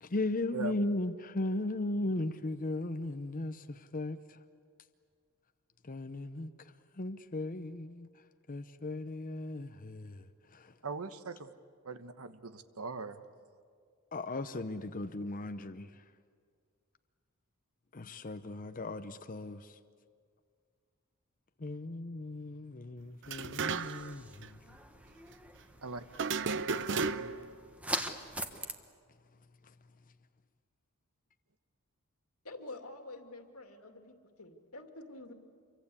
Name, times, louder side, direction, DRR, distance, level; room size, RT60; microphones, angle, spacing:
voice 1, 0.0-4.2 5.9-6.5 7.0-8.1 8.5-10.2 10.5-10.7 14.1-15.9 17.9-19.7 21.6-24.6 27.2-27.3, left 2 dB, 40° left, 9 dB, 0.8 m, -37 dB
voice 2, 10.8-11.5 11.8-13.2 25.8-26.0, right 4 dB, 75° right, 11 dB, 1.2 m, -40 dB
sound 1, 23.2-24.2 24.4-24.5 26.1-27.5, right 4 dB, 55° right, 0.8 m, -34 dB
sound 2, 23.6-28.7, right 1 dB, 5° right, 1.3 m, -42 dB
voice 3, 32.4-35.3, left 2 dB, 75° left, 5 dB, 2.5 m, -48 dB
27.0 x 24.0 x 8.5 m, 2.1 s
head